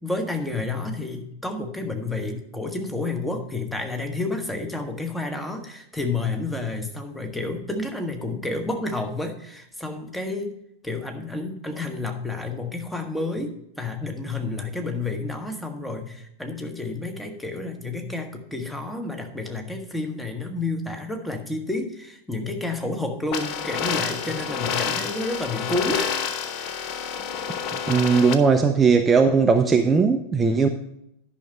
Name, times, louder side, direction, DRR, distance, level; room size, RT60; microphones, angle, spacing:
voice 1, 0.0-10.5 10.8-26.1 26.5-26.7, left 2 dB, 5° left, 5 dB, 1.3 m, -30 dB
sound 1, 23.3-28.3, left 7 dB, 40° left, 0.8 m, -29 dB
voice 2, 27.9-30.7, right 5 dB, 15° right, 5 dB, 0.6 m, -18 dB
10.5 x 5.9 x 5.3 m, 0.76 s
figure-of-eight pair, 90°, 0 cm